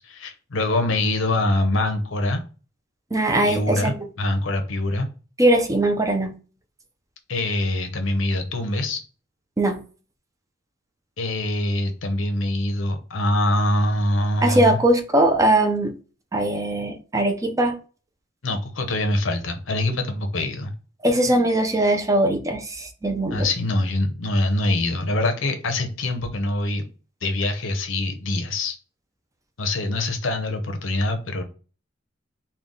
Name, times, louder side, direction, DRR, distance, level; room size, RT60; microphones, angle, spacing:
voice 1, 0.0-2.4 3.5-5.1 7.3-9.0 11.2-14.8 18.4-20.7 23.3-26.8 27.2-28.8 29.6-31.4, left 1 dB, 85° left, 6 dB, 0.8 m, -24 dB
voice 2, 3.1-3.9 5.4-6.3 9.6-9.8 14.4-15.9 16.3-17.7 21.0-23.5, right 1 dB, 15° right, 5 dB, 0.5 m, -20 dB
3.7 x 2.3 x 3.8 m, 0.36 s
head